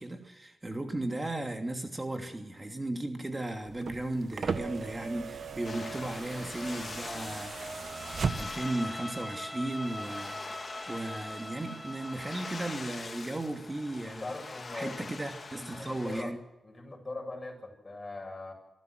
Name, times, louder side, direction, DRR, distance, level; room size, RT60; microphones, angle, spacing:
voice 1, 0.0-7.7 8.2-14.3 14.7-16.4, right 1 dB, 25° right, 5 dB, 2.8 m, -36 dB
sound 1, 3.7-8.8 10.0-10.1, right 5 dB, 65° right, 1.4 m, -37 dB
sound 2, 5.6-16.2, left 4 dB, 45° left, 2.5 m, -44 dB
Bowed string instrument, 7.9-12.8, equal, 5° left, 2.4 m, -42 dB
voice 2, 14.1-15.0 15.6-16.3 16.6-18.5, left 2 dB, 30° left, 3 dB, 7.9 m, -41 dB
25.5 x 15.0 x 8.0 m, 0.95 s
cardioid pair, 70°, 0 cm